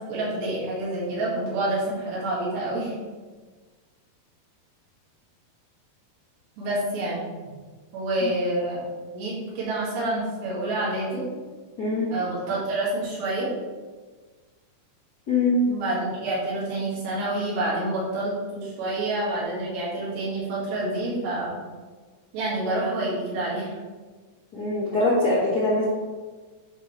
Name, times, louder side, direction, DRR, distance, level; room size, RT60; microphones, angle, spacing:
voice 1, 0.1-2.9 6.6-7.2 7.9-8.9 9.1-11.2 12.1-13.5 15.6-21.6 22.3-23.8, right 2 dB, 80° right, -7 dB, 4.3 m, -28 dB
voice 2, 11.8-12.2 15.3-15.6 24.5-25.8, left 2 dB, 80° left, -8 dB, 0.8 m, -23 dB
8.9 x 5.1 x 3.3 m, 1.4 s
omnidirectional pair, 4.8 m